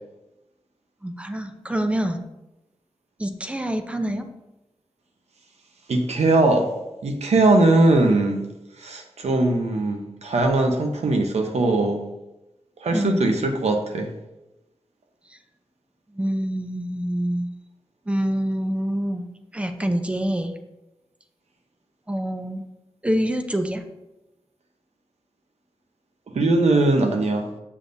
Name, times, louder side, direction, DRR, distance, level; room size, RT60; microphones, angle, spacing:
voice 1, 1.0-2.2 3.2-4.3 12.9-13.2 16.1-17.5 18.1-20.5 22.1-22.6 23.0-23.8, equal, 10° right, 6 dB, 0.6 m, -26 dB
voice 2, 5.9-6.7 7.0-8.4 8.8-12.0 12.8-14.1 26.3-27.5, right 2 dB, 90° right, 4 dB, 1.0 m, -20 dB
7.4 x 6.7 x 2.6 m, 0.95 s
wide cardioid pair, 120°, 11 cm